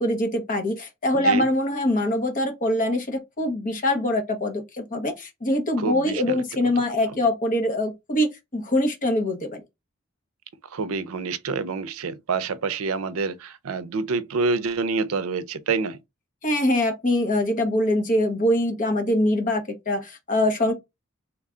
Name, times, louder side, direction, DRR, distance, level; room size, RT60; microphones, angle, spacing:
voice 1, 0.0-9.6 16.4-20.7, left 1 dB, 40° left, 0.9 m, -23 dB
voice 2, 1.1-1.5 5.8-6.4 10.7-16.0, right 4 dB, 85° right, 0.5 m, -27 dB
3.3 x 2.2 x 3.6 m
head